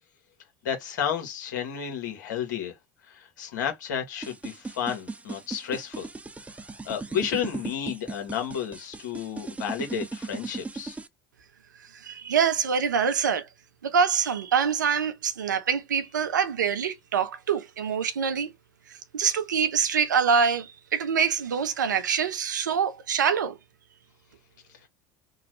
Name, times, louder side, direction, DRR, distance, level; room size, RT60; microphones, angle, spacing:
voice 1, 0.6-2.7 3.1-6.1 6.8-11.0, left 8 dB, 75° left, 1.2 m, -32 dB
sound 1, 4.2-11.1, right 3 dB, 15° right, 0.5 m, -37 dB
voice 2, 12.0-13.5 13.8-18.5 19.1-23.6, right 6 dB, 90° right, 0.5 m, -25 dB
3.0 x 2.3 x 3.0 m
hypercardioid pair, 70°, 10 cm